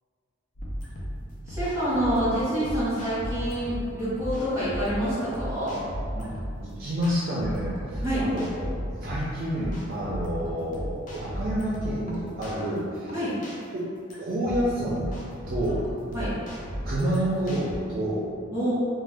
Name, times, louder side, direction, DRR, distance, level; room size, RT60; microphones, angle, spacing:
sound 1, 0.6-17.8, equal, 40° left, 0.5 m, -35 dB
voice 1, 1.5-5.7 8.0-8.2 13.1-13.3 16.1-16.3 18.5-18.7, equal, 15° right, -11 dB, 1.2 m, -27 dB
voice 2, 6.6-8.7 9.0-13.1 14.2-15.1 15.5-15.8 16.8-18.2, right 1 dB, 50° right, -7 dB, 0.4 m, -29 dB
2.5 x 2.1 x 3.3 m, 2.4 s
head